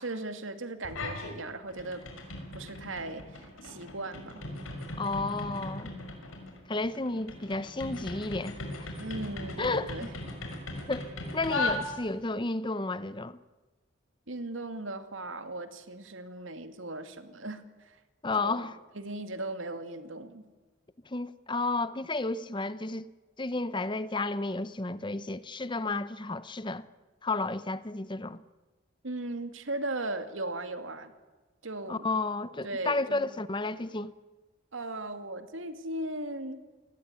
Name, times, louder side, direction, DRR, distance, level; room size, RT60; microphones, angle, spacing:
voice 1, 0.0-2.0 2.5-4.4 9.0-10.1 14.3-18.0 18.4-18.7 18.9-20.5 29.0-31.1 31.6-32.1 32.6-33.2 34.7-36.6, right 2 dB, 75° right, 2.5 m, -37 dB
sound 1, 0.8-1.4 1.7-12.3, left 2 dB, 90° left, 6.1 m, -38 dB
voice 2, 5.0-5.9 6.7-8.9 9.6-10.1 10.9-11.1 11.3-13.4 18.2-18.8 21.1-23.1 23.4-26.9 27.2-28.4 31.9-34.1, left 2 dB, 25° left, 0.8 m, -32 dB
28.0 x 20.5 x 9.6 m
head